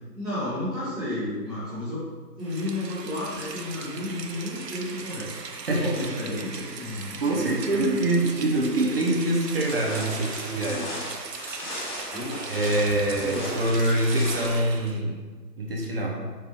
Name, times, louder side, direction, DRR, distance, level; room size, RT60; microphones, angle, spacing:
voice 1, 0.1-2.0 2.3-5.2 5.7-7.9 10.0-10.3 12.1-12.6 13.0-13.5, left 1 dB, ahead, -24 dB, 0.8 m, -32 dB
Rain, 2.4-15.0, right 4 dB, 75° right, 0.9 m, -39 dB
voice 2, 7.2-11.0 12.5-15.3 15.6-16.2, right 1 dB, 35° right, -1 dB, 0.8 m, -25 dB
sound 1, 9.6-14.6, left 1 dB, 30° left, 1.5 m, -37 dB
5.7 x 5.0 x 3.4 m, 1.5 s
figure-of-eight pair, 150°, 49 cm